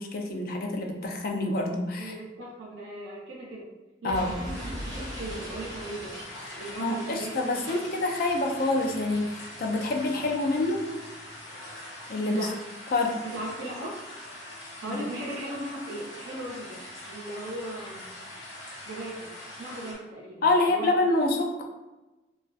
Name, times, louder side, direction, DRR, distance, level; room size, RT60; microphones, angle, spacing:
voice 1, 0.0-2.1 4.0-4.3 6.8-10.8 12.1-12.5 12.9-13.2 14.9-15.0 20.4-21.6, left 2 dB, 55° left, 3 dB, 0.4 m, -27 dB
voice 2, 2.0-3.7 4.0-6.2 6.6-7.3 7.6-7.8 12.3-12.6 13.2-14.0 14.8-16.8 17.1-18.1 18.8-19.3 19.6-20.9, right 1 dB, 90° right, -6 dB, 0.5 m, -38 dB
Explosion, 4.1-8.8, equal, 20° right, 0.5 m, -41 dB
sound 1, 4.5-19.9, left 1 dB, 85° left, 0.7 m, -43 dB
2.3 x 2.2 x 2.4 m, 1.1 s
head